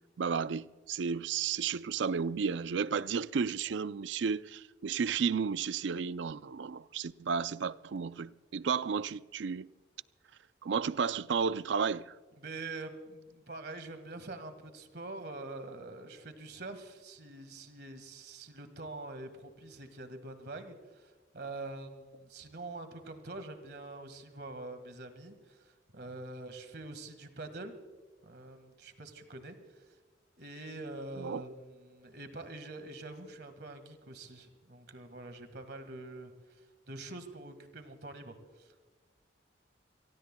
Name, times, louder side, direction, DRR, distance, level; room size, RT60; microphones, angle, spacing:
voice 1, 0.2-9.7 10.6-12.2 31.2-31.4, right 6 dB, 85° right, 0.4 m, -33 dB
voice 2, 12.4-27.7 28.2-29.8 30.4-36.6 36.9-38.7, right 2 dB, 60° right, 1.8 m, -45 dB
29.5 x 18.5 x 2.3 m
head